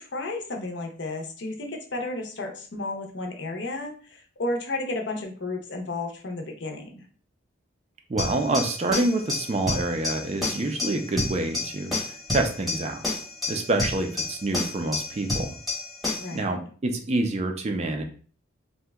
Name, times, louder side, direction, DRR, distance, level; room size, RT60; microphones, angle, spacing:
voice 1, 0.0-7.0 16.2-16.5, left 2 dB, 60° left, 3 dB, 0.6 m, -33 dB
voice 2, 8.1-13.0 13.5-15.5 16.3-18.0, right 2 dB, 30° right, 5 dB, 0.3 m, -27 dB
sound 1, 8.2-16.4, left 2 dB, ahead, 0.9 m, -30 dB
2.8 x 2.1 x 3.4 m, 0.43 s
head